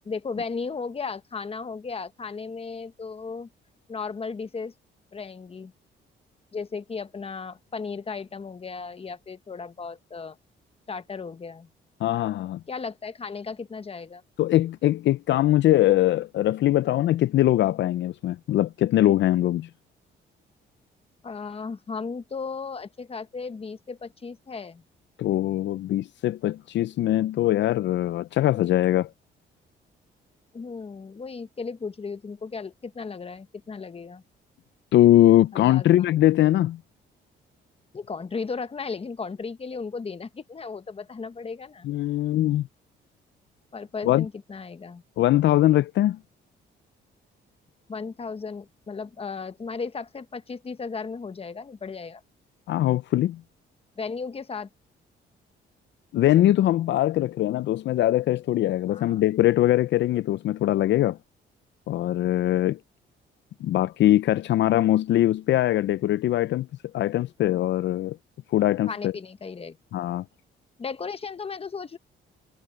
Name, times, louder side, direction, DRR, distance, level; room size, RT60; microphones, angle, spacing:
voice 1, 0.0-3.5 3.9-4.7 5.1-5.7 6.5-10.4 10.9-11.7 12.7-14.2 21.2-24.8 30.5-34.2 35.5-36.1 37.9-41.9 43.7-45.0 47.9-52.2 54.0-54.7 58.9-59.2 68.9-69.8 70.8-72.0, left 5 dB, 30° left, 1.1 m, -35 dB
voice 2, 12.0-12.6 14.4-19.7 25.2-29.1 34.9-36.8 41.8-42.7 44.0-44.3 45.2-46.2 52.7-53.4 56.1-61.2 61.9-62.8 63.6-66.7 66.9-68.2 68.5-69.1 69.9-70.2, left 14 dB, 65° left, 0.5 m, -22 dB
cardioid pair, 90°, 20 cm